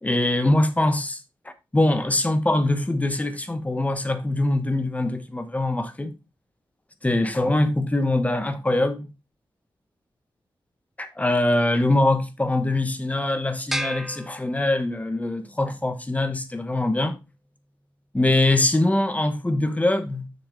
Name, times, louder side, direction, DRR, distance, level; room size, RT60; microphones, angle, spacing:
voice 1, 0.0-1.2 1.7-6.1 7.0-9.1 11.0-17.2 18.1-20.3, left 2 dB, 15° left, 1.1 m, -23 dB
sound 1, 13.7-15.2, right 1 dB, 5° right, 0.6 m, -33 dB
6.7 x 6.6 x 3.8 m
wide cardioid pair, 100°, 9 cm